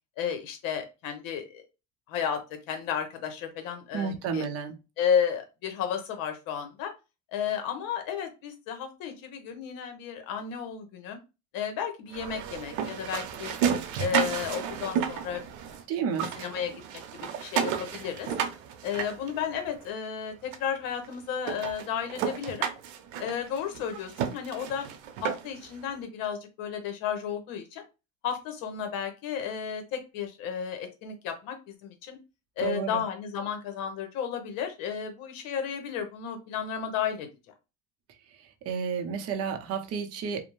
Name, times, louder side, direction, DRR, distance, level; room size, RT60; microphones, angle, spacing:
voice 1, 0.2-1.6 2.1-2.4 2.7-4.4 5.0-6.9 7.3-11.2 11.5-13.5 14.0-15.4 16.4-18.3 18.8-22.7 23.2-24.9 25.2-27.9 28.2-31.6 31.8-32.2 32.6-37.3, left 8 dB, 60° left, 6 dB, 0.9 m, -33 dB
voice 2, 3.9-4.7 15.9-16.3 32.6-33.0 38.4-40.4, right 6 dB, 40° right, 6 dB, 0.6 m, -31 dB
sound 1, 12.1-15.8 16.1-19.8 20.5-20.6 21.0-21.1 21.4-25.7, right 8 dB, 80° right, 0.7 m, -32 dB
2.5 x 2.1 x 3.0 m, 0.28 s
supercardioid pair, 115°, 38 cm